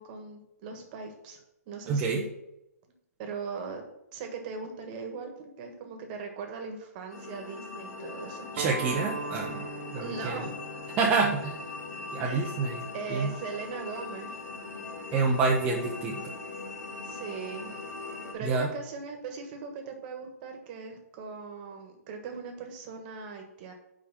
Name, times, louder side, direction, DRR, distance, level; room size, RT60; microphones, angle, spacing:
voice 1, 0.0-1.4 1.7-2.3 3.2-3.8 4.1-8.5 10.0-10.6 12.2-12.5 12.9-14.4 17.0-17.8 18.3-23.7, right 4 dB, 35° right, 4 dB, 1.4 m, -39 dB
voice 2, 1.9-2.2 8.5-9.7 9.9-10.4 11.0-11.6 12.1-13.4 15.1-16.4 18.4-18.7, right 4 dB, 15° right, -2 dB, 0.7 m, -28 dB
sound 1, 7.1-18.3, left 3 dB, 90° left, 2.2 m, -40 dB
Acoustic guitar, 8.6-13.8, right 4 dB, 55° right, 0.8 m, -41 dB
5.6 x 5.0 x 6.1 m, 0.87 s
hypercardioid pair, 155°, 9 cm